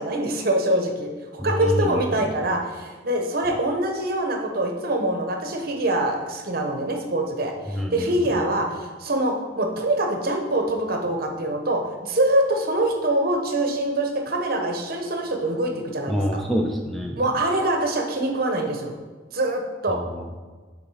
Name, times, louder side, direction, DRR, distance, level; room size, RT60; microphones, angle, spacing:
voice 1, 0.0-16.4 17.2-18.9 19.3-20.0, right 1 dB, 50° right, 3 dB, 0.9 m, -24 dB
voice 2, 1.4-2.3 7.7-8.2 16.1-17.2 19.9-20.3, equal, ahead, 1 dB, 0.4 m, -27 dB
7.0 x 3.9 x 4.8 m, 1.4 s
head